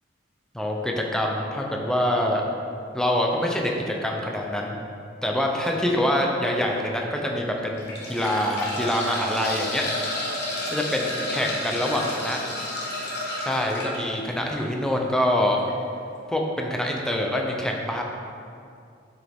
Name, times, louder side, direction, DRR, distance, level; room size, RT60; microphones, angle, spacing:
voice 1, 0.5-2.4 2.9-4.8 5.2-9.9 10.7-12.4 13.4-15.6 16.3-18.0, left 1 dB, 5° left, 0 dB, 0.6 m, -25 dB
sound 1, 5.7-5.9 6.5-6.6 7.6-14.0 15.6-15.7 16.0-16.1, left 1 dB, 60° left, 1.4 m, -31 dB
7.4 x 6.2 x 3.6 m, 2.4 s
head